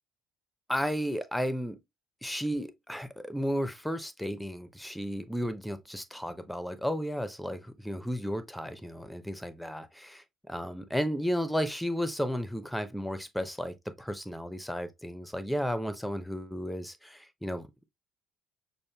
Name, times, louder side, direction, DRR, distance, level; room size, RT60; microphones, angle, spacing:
voice 1, 0.7-1.8 2.2-17.9, equal, 5° left, 0.7 m, -33 dB
6.3 x 2.5 x 2.2 m
figure-of-eight pair, 50°, 0 cm